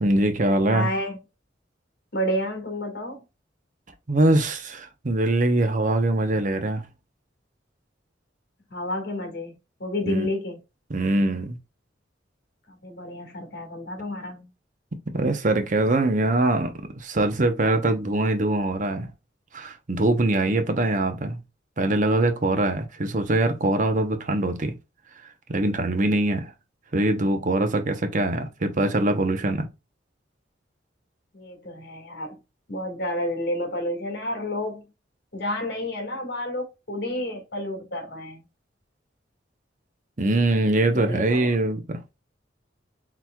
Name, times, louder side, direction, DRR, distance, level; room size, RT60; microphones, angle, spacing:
voice 1, 0.0-0.9 4.1-6.9 10.1-10.3 10.9-11.6 15.1-19.1 19.5-21.4 21.8-24.7 25.5-26.5 26.9-29.7 40.2-42.0, right 2 dB, 45° right, 0.8 m, -23 dB
voice 2, 0.7-1.2 2.1-3.2 8.7-9.5 9.8-10.6 12.7-14.5 31.3-32.4 32.7-34.9 35.3-38.4 40.9-41.5, left 1 dB, 60° left, 1.7 m, -30 dB
4.4 x 4.0 x 2.2 m
head